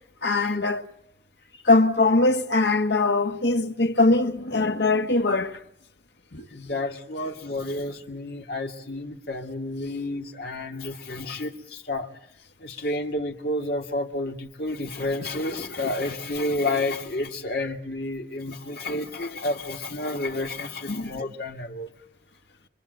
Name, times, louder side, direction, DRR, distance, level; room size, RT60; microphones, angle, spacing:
voice 1, 0.2-0.8 1.6-5.6 6.3-6.5 20.9-21.1, left 3 dB, 80° left, 1.7 m, -21 dB
voice 2, 6.5-12.1 12.6-21.9, left 2 dB, 60° left, 2.3 m, -30 dB
26.0 x 24.5 x 8.1 m
head